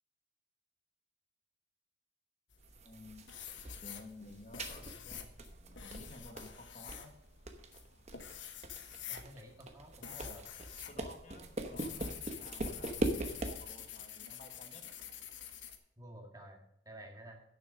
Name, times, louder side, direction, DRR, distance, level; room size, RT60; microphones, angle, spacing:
sound 1, 2.5-3.0 3.3-11.0 11.2-15.8, left 9 dB, 85° left, 1.2 m, -47 dB
sound 2, 2.6-13.7, right 1 dB, 35° right, 1.0 m, -42 dB
voice 1, 2.8-3.3 3.8-5.3 5.8-7.1 10.0-10.4 10.9-14.9, left 2 dB, 40° left, 4 dB, 1.3 m, -54 dB
voice 2, 9.1-10.4 16.0-17.4, equal, 20° right, 2 dB, 1.8 m, -52 dB
9.7 x 7.1 x 6.2 m, 0.78 s
head